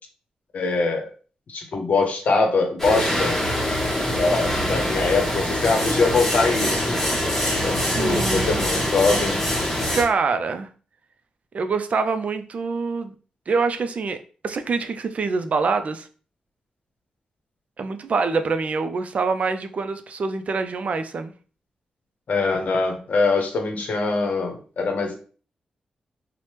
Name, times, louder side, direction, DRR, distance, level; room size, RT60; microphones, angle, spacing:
voice 1, 0.5-1.1 1.5-3.4 4.1-7.0 7.6-9.4 22.3-25.2, left 3 dB, 70° left, 4 dB, 0.7 m, -23 dB
sound 1, 2.8-10.0, equal, 10° left, 0.9 m, -24 dB
voice 2, 8.0-8.7 9.9-10.7 11.5-13.1 13.5-14.2 14.4-16.1 17.8-21.3, right 4 dB, 60° right, 9 dB, 0.3 m, -25 dB
3.1 x 2.0 x 2.9 m, 0.39 s
cardioid pair, 60°, 3 cm